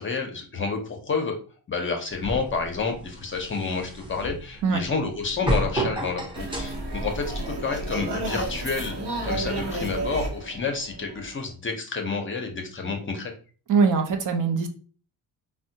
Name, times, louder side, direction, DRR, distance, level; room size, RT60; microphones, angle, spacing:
voice 1, 0.0-1.4 1.7-9.0 9.2-13.3, left 4 dB, 30° left, 3 dB, 0.6 m, -29 dB
sound 1, 2.1-8.6, right 1 dB, 10° right, 0.7 m, -32 dB
sound 2, 6.4-11.5, right 2 dB, 80° right, 0.9 m, -31 dB
voice 2, 13.7-14.7, right 5 dB, 50° right, 5 dB, 0.6 m, -22 dB
3.5 x 2.1 x 2.7 m, 0.38 s
cardioid pair, 120°, 39 cm